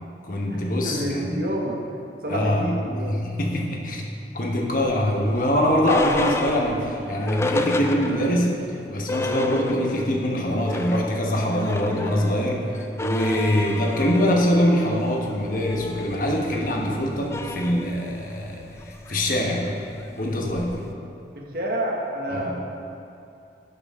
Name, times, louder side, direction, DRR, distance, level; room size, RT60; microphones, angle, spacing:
voice 1, 0.2-1.4 2.3-2.7 3.1-4.1 4.3-19.7 20.2-20.8 22.3-22.5, equal, 50° left, 0 dB, 1.2 m, -23 dB
voice 2, 0.8-1.8 2.2-3.2 21.3-22.5, right 1 dB, 55° right, -1 dB, 1.5 m, -28 dB
sound 1, 4.8-8.5 8.8-8.9 9.1-10.2 10.5-20.9, left 2 dB, 15° left, 0.4 m, -32 dB
12.0 x 8.1 x 3.7 m, 2.6 s
head